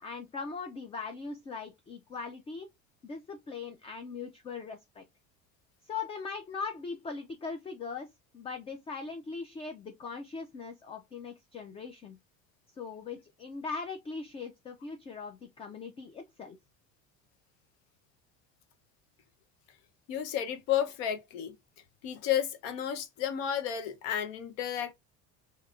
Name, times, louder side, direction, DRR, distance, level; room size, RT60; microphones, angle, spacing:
voice 1, 0.0-2.7 3.0-5.0 5.8-8.1 8.3-12.2 12.8-16.6, left 4 dB, 20° left, 0.4 m, -40 dB
voice 2, 20.1-21.5 22.0-24.9, left 10 dB, 85° left, 0.8 m, -32 dB
3.4 x 2.8 x 2.4 m
cardioid pair, 125°, 31 cm